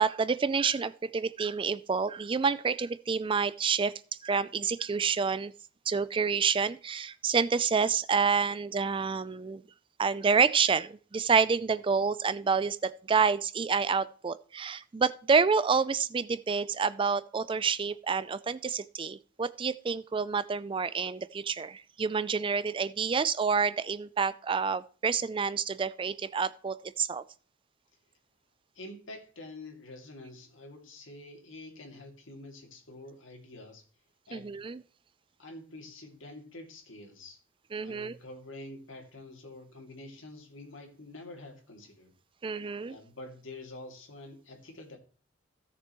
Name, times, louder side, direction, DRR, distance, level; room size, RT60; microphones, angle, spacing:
voice 1, 0.0-3.9 4.2-5.5 5.9-9.6 10.0-27.2 34.3-34.8 37.7-38.2 42.4-43.0, right 5 dB, 25° right, 16 dB, 0.3 m, -28 dB
voice 2, 28.7-33.8 34.3-34.5 35.4-37.4 37.8-42.1 42.9-45.0, left 2 dB, 65° left, 3 dB, 2.6 m, -47 dB
16.5 x 6.8 x 3.0 m, 0.40 s
head